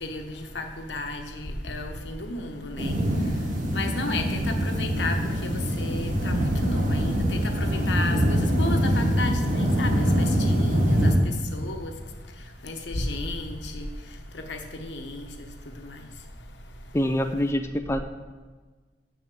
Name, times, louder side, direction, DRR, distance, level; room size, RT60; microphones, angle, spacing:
voice 1, 0.0-3.0 3.7-11.9 12.6-13.9 14.3-16.1, left 2 dB, 80° left, 5 dB, 1.1 m, -33 dB
sound 1, 2.8-11.1, equal, 50° right, 1.5 m, -24 dB
voice 2, 16.9-18.0, equal, 15° left, 6 dB, 0.4 m, -25 dB
6.5 x 6.4 x 7.6 m, 1.4 s
head